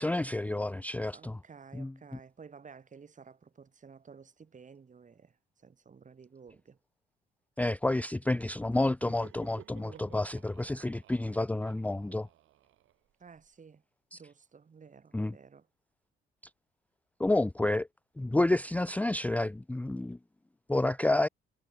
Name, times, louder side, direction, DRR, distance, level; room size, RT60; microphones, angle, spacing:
voice 1, 0.0-1.4 1.7-1.9 7.6-12.3 14.1-14.2 15.1-15.3 17.2-17.9 18.2-20.2 20.7-21.3, left 2 dB, 5° left, 0.5 m, -29 dB
voice 2, 1.1-6.8 9.8-10.2 13.2-13.8 14.1-15.7, right 5 dB, 40° right, 5.2 m, -53 dB
Laughter, 8.9-13.5, right 14 dB, 85° right, 6.4 m, -57 dB
cardioid pair, 90°, 20 cm